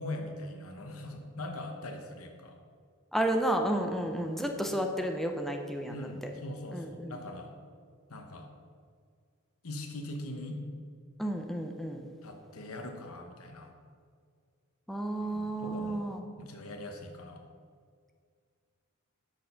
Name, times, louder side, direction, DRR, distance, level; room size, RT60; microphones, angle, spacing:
voice 1, 0.0-2.6 4.0-4.1 4.7-4.8 5.9-7.5 8.1-8.5 9.6-10.6 12.2-13.7 15.2-16.0 16.4-17.4, left 1 dB, 75° left, 4 dB, 1.1 m, -41 dB
voice 2, 3.1-6.3 6.7-7.2 11.2-12.1 14.9-16.2, right 1 dB, ahead, 3 dB, 0.5 m, -32 dB
6.6 x 6.3 x 5.6 m, 2.1 s
head